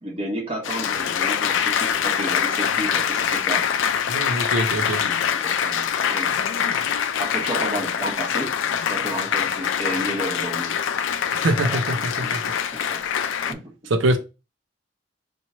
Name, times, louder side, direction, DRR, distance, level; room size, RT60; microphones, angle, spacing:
voice 1, 0.0-3.7 4.8-5.2 5.4-6.3 7.2-8.6 8.9-10.8 11.6-12.3 12.9-13.0 13.4-13.7, right 1 dB, 30° right, 1.1 m, -32 dB
Applause, 0.6-13.5, left 8 dB, 80° left, 0.4 m, -24 dB
voice 2, 4.1-5.0 11.3-13.0 13.9-14.2, right 1 dB, 85° right, 0.7 m, -24 dB
3.0 x 2.6 x 4.2 m
head